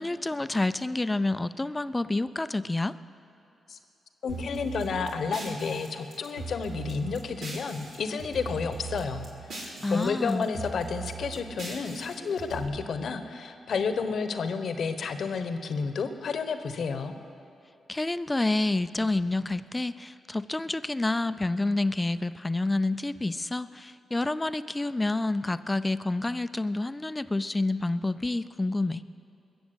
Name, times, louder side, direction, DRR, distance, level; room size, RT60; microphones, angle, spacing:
voice 1, 0.0-2.9 9.8-10.5 17.9-29.0, left 2 dB, 20° left, 14 dB, 0.5 m, -28 dB
voice 2, 4.2-9.3 9.9-17.1, left 5 dB, 70° left, 9 dB, 1.0 m, -31 dB
sound 1, 4.3-7.9 8.2-10.0 10.3-12.6, right 4 dB, 80° right, 3.5 m, -40 dB
21.0 x 7.2 x 8.1 m, 2.7 s
supercardioid pair, 50°, 0 cm